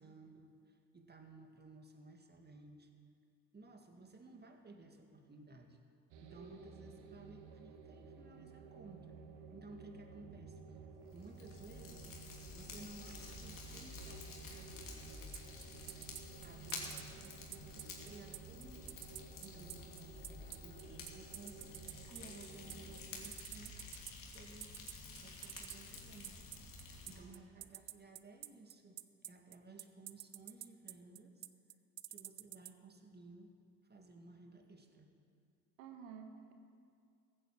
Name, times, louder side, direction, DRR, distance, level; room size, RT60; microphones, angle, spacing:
voice 1, 0.0-2.9 3.5-5.8 6.2-9.2 9.5-15.4 16.4-18.9 19.4-23.8 24.2-24.9 25.2-26.4 27.1-29.0 29.3-31.5 32.1-33.5 33.8-35.1, right 3 dB, 25° right, 4 dB, 2.0 m, -57 dB
sound 1, 6.1-23.3, right 5 dB, 65° right, 1.5 m, -54 dB
Fire, 11.0-27.2, left 4 dB, 50° left, 2.8 m, -51 dB
sound 2, 15.3-32.7, right 13 dB, 40° right, 0.6 m, -48 dB
voice 2, 16.5-17.1 27.1-27.4 27.7-27.8 35.8-36.5, right 7 dB, 80° right, 5 dB, 1.6 m, -54 dB
14.5 x 8.8 x 7.5 m, 2.3 s
hypercardioid pair, 60°, 40 cm